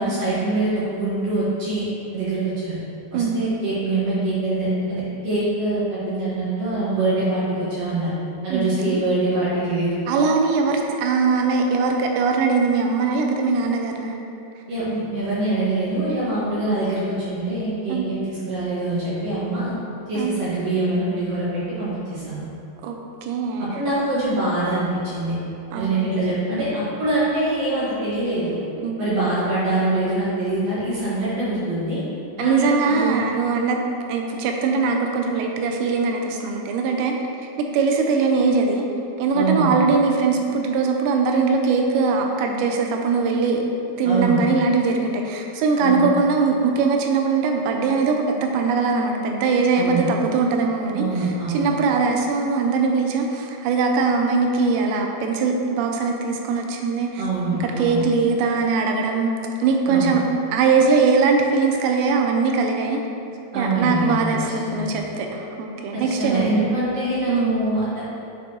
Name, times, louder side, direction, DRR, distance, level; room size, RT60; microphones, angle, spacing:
voice 1, 0.0-1.9 2.1-2.8 3.1-8.1 8.4-10.0 14.7-19.7 20.1-22.5 23.7-25.3 25.7-28.6 29.0-32.0 32.4-33.2 39.3-39.7 44.0-44.4 45.8-46.1 49.7-50.1 50.9-51.7 57.2-58.0 59.9-60.1 63.5-64.2 64.7-64.9 65.9-68.0, right 2 dB, 55° right, -11 dB, 2.0 m, -24 dB
voice 2, 8.5-9.0 10.1-14.2 17.9-18.1 20.2-20.3 22.8-23.8 25.7-26.3 28.8-29.0 32.4-33.8 34.1-37.1 37.6-38.8 39.2-43.6 44.0-57.2 57.6-59.3 59.6-60.2 60.5-63.0 63.6-66.7 67.3-67.6, right 4 dB, 85° right, 2 dB, 2.8 m, -21 dB
7.8 x 5.2 x 3.0 m, 2.7 s
omnidirectional pair, 5.1 m